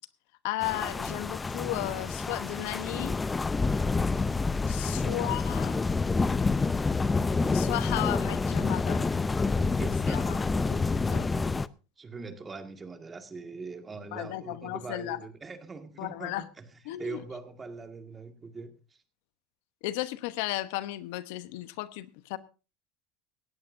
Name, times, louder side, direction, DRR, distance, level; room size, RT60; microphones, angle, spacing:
voice 1, 0.4-3.2 4.7-5.8 7.5-9.0 9.5-9.7 10.1-10.4 10.7-11.3 14.1-15.2 16.0-16.4 16.9-17.2 19.8-22.4, left 17 dB, 75° left, 0.9 m, -34 dB
sound 1, 0.6-11.7, left 4 dB, 15° left, 0.5 m, -28 dB
voice 2, 4.7-5.4 9.6-10.6 11.1-11.2 12.0-19.0, right 4 dB, 20° right, 1.9 m, -42 dB
18.0 x 14.0 x 2.6 m
supercardioid pair, 105°, 0 cm